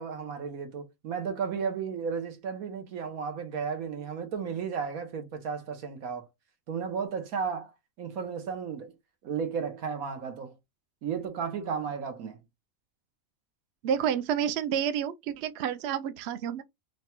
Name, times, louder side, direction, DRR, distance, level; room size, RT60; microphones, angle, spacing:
voice 1, 0.0-6.3 6.7-7.7 8.0-8.9 9.2-10.5 11.0-12.4, right 6 dB, 85° right, 1.4 m, -34 dB
voice 2, 13.8-16.6, right 8 dB, 65° right, 0.7 m, -29 dB
3.9 x 2.2 x 4.3 m
omnidirectional pair, 1.5 m